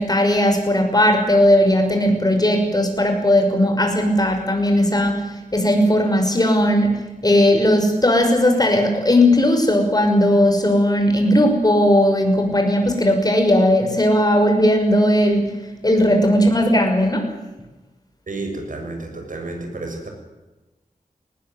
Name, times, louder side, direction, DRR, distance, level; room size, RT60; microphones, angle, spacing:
voice 1, 0.0-15.6 15.8-17.3, left 1 dB, 25° left, 4 dB, 6.2 m, -17 dB
voice 2, 18.3-20.1, right 2 dB, 70° right, 4 dB, 7.1 m, -31 dB
20.0 x 19.0 x 9.5 m, 1.1 s
wide cardioid pair, 85°, 14 cm